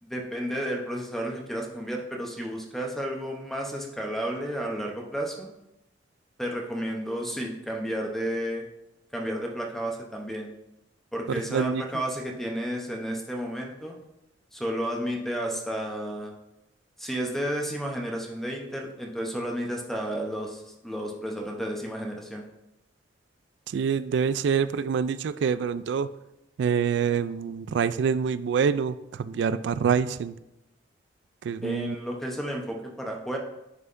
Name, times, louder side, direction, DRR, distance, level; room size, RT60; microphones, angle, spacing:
voice 1, 0.0-5.5 6.4-8.7 9.1-10.5 11.1-14.0 14.5-16.3 17.0-22.4 31.6-33.4, equal, ahead, 1 dB, 0.8 m, -32 dB
voice 2, 11.3-11.8 23.7-26.1 26.6-30.3 31.4-32.0, right 6 dB, 65° right, 15 dB, 0.3 m, -26 dB
9.4 x 5.7 x 2.6 m, 0.89 s
head